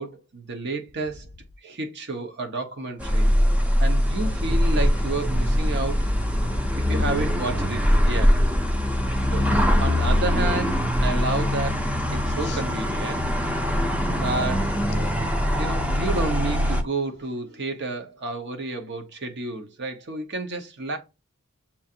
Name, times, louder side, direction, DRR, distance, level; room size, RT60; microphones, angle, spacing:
voice 1, 0.0-1.3 1.6-3.3 3.8-6.1 6.9-8.4 9.3-11.8 12.1-13.2 14.1-14.8 15.5-21.0, right 2 dB, 50° right, 0.8 m, -30 dB
sound 1, 3.0-16.8, equal, 5° right, 0.5 m, -22 dB
voice 2, 6.4-6.9 12.4-12.6 13.2-13.9 14.9-15.2, left 4 dB, 50° left, 0.5 m, -41 dB
7.1 x 2.5 x 2.7 m
head